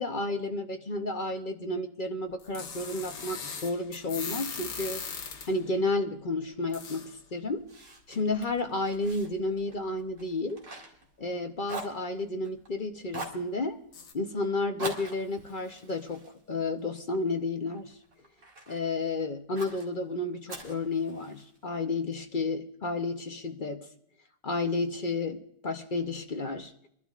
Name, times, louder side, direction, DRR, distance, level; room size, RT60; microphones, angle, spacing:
voice 1, 0.0-5.0 5.5-7.7 8.1-10.6 11.2-13.8 14.1-17.9 18.7-23.9 24.4-26.7, left 2 dB, 45° left, 6 dB, 0.7 m, -31 dB
sound 1, 2.4-5.7 6.7-7.2 8.4-8.5 9.1-9.2 9.6-9.7 13.9-14.1, left 5 dB, 85° left, 1.9 m, -39 dB
Fire, 7.7-11.4 11.6-12.7 13.1-13.5 14.8-17.2 17.7-18.8 19.6-19.9 20.5-21.6, right 2 dB, 45° right, 2.6 m, -43 dB
26.0 x 12.0 x 2.4 m, 0.74 s
omnidirectional pair, 1.8 m